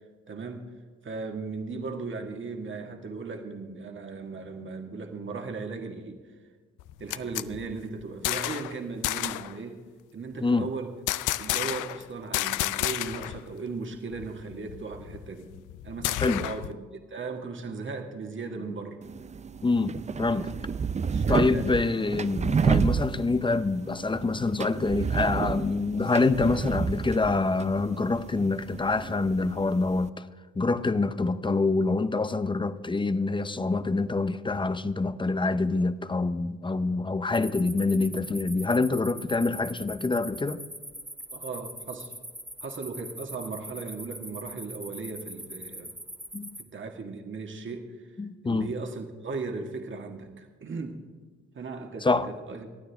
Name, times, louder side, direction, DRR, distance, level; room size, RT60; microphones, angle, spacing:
voice 1, 0.3-0.7 1.0-6.2 7.0-9.8 10.1-10.9 11.4-15.5 15.8-19.0 21.1-22.2 41.3-42.1 42.6-45.9 46.6-48.1 48.4-51.0 51.5-52.7, right 4 dB, 40° right, 1.8 m, -37 dB
sound 1, 6.8-8.7 9.0-9.5 11.1-12.0 12.3-13.4 13.7-13.8 14.1-16.7, left 15 dB, 85° left, 0.5 m, -31 dB
sound 2, 19.0-30.1, right 6 dB, 25° right, 0.4 m, -30 dB
voice 2, 19.6-20.5 21.3-30.2 30.6-40.6 46.3-46.6 48.2-48.7 52.0-52.3, left 3 dB, 15° left, 0.6 m, -26 dB
sound 3, 37.3-46.6, right 1 dB, 5° right, 1.4 m, -42 dB
26.5 x 9.4 x 3.5 m
cardioid pair, 90°, 30 cm